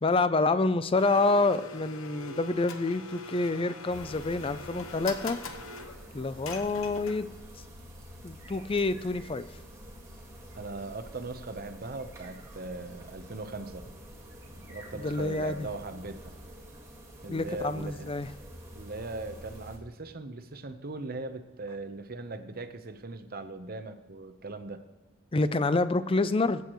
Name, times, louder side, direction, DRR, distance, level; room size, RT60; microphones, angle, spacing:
voice 1, 0.0-5.4 6.1-7.3 8.2-9.4 15.0-15.7 17.3-18.3 25.3-26.6, left 3 dB, 25° left, 13 dB, 0.5 m, -27 dB
Domestic sounds home sounds, 1.0-7.5, left 3 dB, 80° left, 1.0 m, -43 dB
sound 1, 3.9-19.8, equal, 15° right, 1.9 m, -48 dB
voice 2, 10.5-13.9 14.7-16.4 17.2-18.0 18.7-24.8, right 2 dB, 45° right, 8 dB, 0.9 m, -39 dB
21.0 x 8.1 x 3.1 m, 1.2 s
head